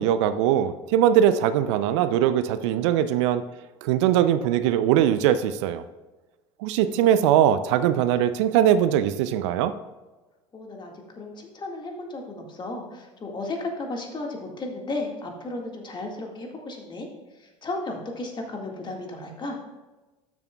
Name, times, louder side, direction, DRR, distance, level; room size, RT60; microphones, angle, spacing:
voice 1, 0.0-3.4 3.8-5.8 6.6-9.7, right 10 dB, 65° right, 13 dB, 0.4 m, -21 dB
voice 2, 10.5-17.1 17.4-19.6, left 2 dB, 30° left, 1 dB, 1.8 m, -34 dB
12.5 x 6.9 x 2.3 m, 1.2 s
hypercardioid pair, 75°, 16 cm